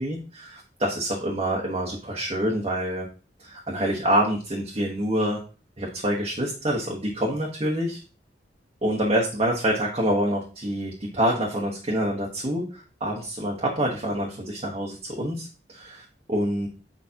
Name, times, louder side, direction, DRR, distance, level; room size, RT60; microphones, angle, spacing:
voice 1, 0.0-3.0 3.4-5.4 5.8-8.0 8.8-16.7, equal, 35° right, -2 dB, 1.1 m, -26 dB
6.6 x 5.1 x 2.8 m, 0.35 s
head